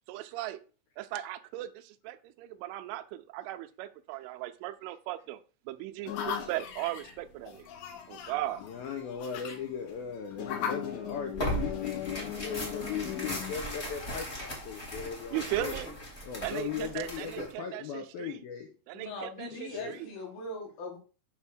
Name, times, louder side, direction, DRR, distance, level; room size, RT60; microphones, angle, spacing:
voice 1, 0.1-0.6 1.0-5.4 5.7-7.7 8.1-8.6 15.3-15.9 16.4-18.4 18.9-20.1, right 14 dB, 85° right, 10 dB, 3.0 m, -37 dB
sound 1, 6.1-15.7, left 8 dB, 75° left, 3.2 m, -39 dB
voice 2, 8.6-15.8 16.2-18.7 19.5-20.0, left 7 dB, 90° left, 3 dB, 2.0 m, -38 dB
Tearing, 11.3-17.5, equal, 35° left, 0.9 m, -38 dB
voice 3, 18.9-21.0, left 2 dB, 60° left, 1 dB, 2.9 m, -40 dB
8.7 x 3.5 x 6.3 m, 0.36 s
omnidirectional pair, 5.5 m